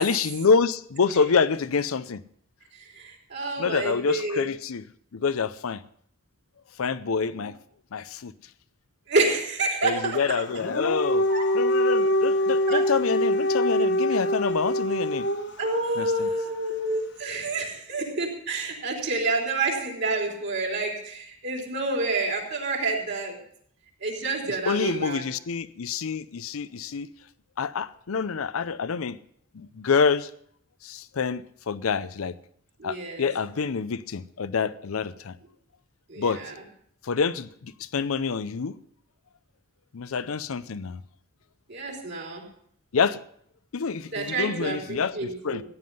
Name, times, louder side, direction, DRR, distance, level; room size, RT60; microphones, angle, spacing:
voice 1, 0.0-2.2 3.6-4.9 5.1-5.8 6.8-7.6 7.9-8.3 9.8-11.3 11.5-15.3 16.0-16.3 24.5-27.1 27.6-29.2 29.5-30.3 30.8-32.4 32.8-35.4 36.2-36.4 37.0-38.8 39.9-41.0 42.9-43.2 43.7-45.6, left 5 dB, 80° left, 0.6 m, -27 dB
voice 2, 2.8-4.5 7.3-7.5 9.1-10.4 11.3-11.4 12.7-12.8 15.6-23.4 24.0-25.2 32.8-33.3 36.1-36.5 41.7-42.4 44.1-45.6, right 3 dB, 55° right, 3.5 m, -28 dB
Dog, 10.5-15.7, left 1 dB, 55° left, 1.3 m, -24 dB
14.5 x 9.6 x 5.3 m
head